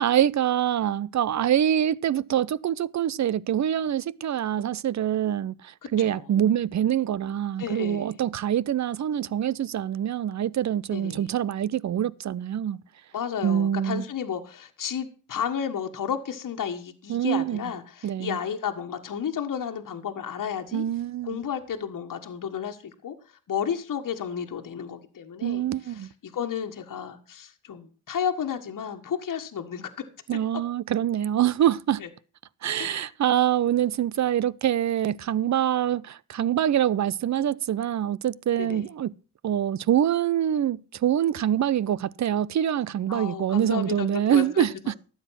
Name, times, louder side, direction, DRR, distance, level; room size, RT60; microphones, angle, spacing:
voice 1, 0.0-12.8 13.4-14.0 17.1-17.6 18.0-18.4 20.7-21.4 25.4-26.1 30.3-32.0 32.6-39.1 39.4-44.9, right 10 dB, 50° right, 0.7 m, -25 dB
voice 2, 7.6-8.2 10.9-11.3 13.1-20.8 21.2-23.1 23.5-29.9 32.8-33.1 38.6-38.9 43.1-44.7, left 8 dB, 60° left, 1.6 m, -32 dB
12.5 x 8.1 x 5.8 m
supercardioid pair, 45°, 37 cm